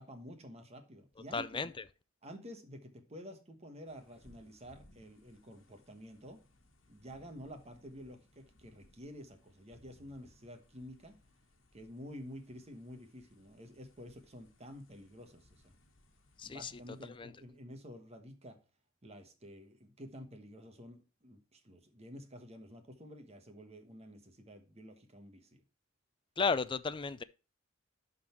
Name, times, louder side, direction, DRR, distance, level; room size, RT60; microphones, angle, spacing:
voice 1, 0.0-1.6 2.2-6.4 6.9-11.2 11.7-15.7 16.4-18.6 19.0-25.6, equal, 30° right, 1.2 m, -50 dB
voice 2, 1.3-1.8 16.4-16.7 17.1-17.3 26.4-27.2, left 5 dB, 25° left, 0.4 m, -34 dB
sound 1, 3.9-17.1, left 1 dB, 70° left, 1.4 m, -66 dB
11.0 x 4.0 x 4.4 m
head